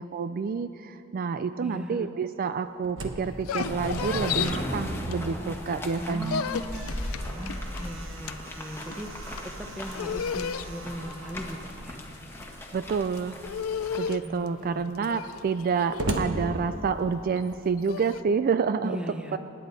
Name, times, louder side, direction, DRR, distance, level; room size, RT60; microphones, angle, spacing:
voice 1, 0.0-6.5 12.7-13.4 14.0-19.0 19.3-19.4, right 5 dB, 45° right, 11 dB, 0.3 m, -28 dB
voice 2, 1.6-2.1 5.2-5.6 6.0-6.9 7.3-12.0 14.2-15.2 18.8-19.4, equal, 5° right, 5 dB, 0.8 m, -39 dB
Slam, 2.5-5.3 5.7-5.8 6.2-11.9 12.8-13.3 13.9-14.0 14.2-17.3, right 1 dB, 65° right, 1.2 m, -39 dB
sound 1, 3.2-5.6 5.9-18.2, left 7 dB, 85° left, 0.4 m, -35 dB
sound 2, 3.6-14.0, left 1 dB, 10° left, 1.5 m, -37 dB
26.5 x 10.5 x 4.1 m, 3.0 s
head